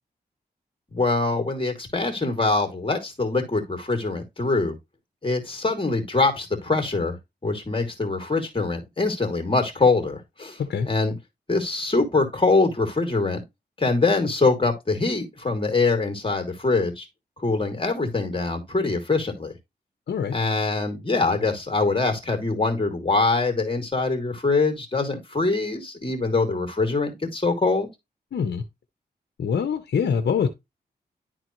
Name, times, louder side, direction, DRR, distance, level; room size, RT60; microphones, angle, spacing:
voice 1, 0.9-4.7 5.2-7.2 7.4-11.2 11.5-13.4 13.8-17.1 17.4-19.6 20.3-27.9, left 3 dB, 30° left, 2.6 m, -23 dB
voice 2, 20.1-20.4 28.3-28.6 29.4-30.5, left 6 dB, 80° left, 0.7 m, -24 dB
11.0 x 3.9 x 3.0 m
cardioid pair, 60°, 18 cm